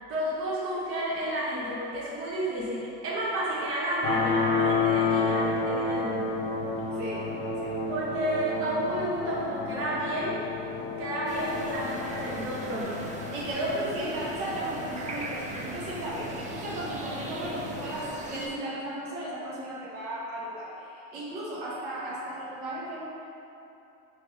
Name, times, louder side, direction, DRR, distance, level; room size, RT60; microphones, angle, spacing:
voice 1, 0.1-6.4 7.9-10.4 11.0-13.0 13.5-14.1, right 1 dB, 45° right, -6 dB, 1.1 m, -31 dB
sound 1, 4.0-17.9, left 4 dB, 60° left, 0.8 m, -31 dB
voice 2, 6.9-7.2 7.6-7.8 13.3-23.0, right 1 dB, 80° right, -6 dB, 1.3 m, -36 dB
sound 2, 11.3-18.5, right 2 dB, 25° right, 0.5 m, -39 dB
3.8 x 3.0 x 4.5 m, 2.8 s
supercardioid pair, 110°, 31 cm